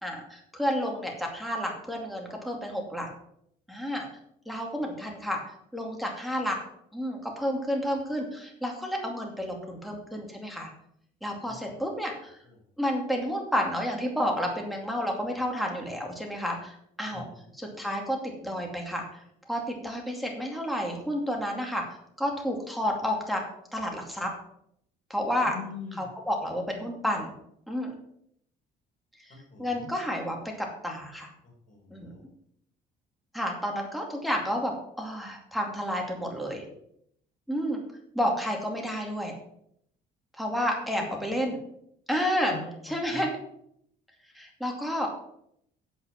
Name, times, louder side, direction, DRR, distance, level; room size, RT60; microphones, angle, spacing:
voice 1, 0.0-3.1 3.7-4.1 4.5-5.4 5.7-6.6 6.9-10.7 11.2-12.4 12.8-17.3 17.5-18.2 18.4-19.0 19.5-21.8 22.2-23.4 23.7-24.3 25.1-25.6 25.9-27.3 27.7-27.9 29.2-29.3 29.6-31.3 31.9-32.1 33.3-36.6 37.5-37.8 38.1-39.3 40.4-41.6 42.1-42.5 42.8-43.3 44.3-45.1, equal, ahead, 0 dB, 2.4 m, -30 dB
voice 2, 17.1-17.4 25.4-26.1 29.5-29.9 31.7-32.2 40.9-41.0 42.5-42.6 43.1-43.2, left 5 dB, 50° left, 0 dB, 4.2 m, -42 dB
8.3 x 8.0 x 5.9 m, 0.72 s
cardioid pair, 110°, 17 cm